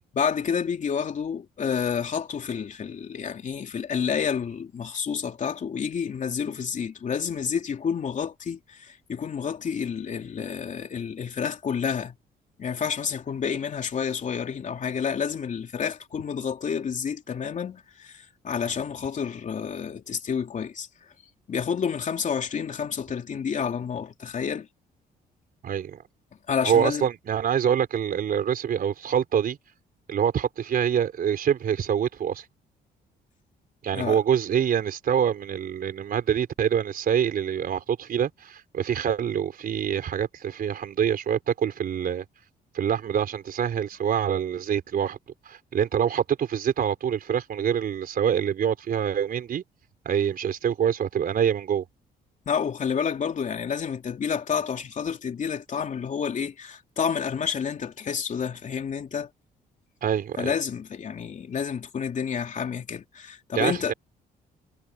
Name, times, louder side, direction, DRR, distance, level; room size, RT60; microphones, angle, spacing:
voice 1, 0.1-12.1 12.6-20.9 21.5-24.7 26.5-27.0 33.9-34.2 52.5-59.3 60.4-63.9, left 7 dB, 45° left, 3.1 m, -29 dB
voice 2, 25.6-26.0 26.6-29.6 30.1-32.5 33.8-42.2 42.7-45.2 45.4-49.6 50.0-51.8 60.0-60.5 63.5-63.9, right 8 dB, 60° right, 4.5 m, -25 dB
cardioid pair, 110°, 17 cm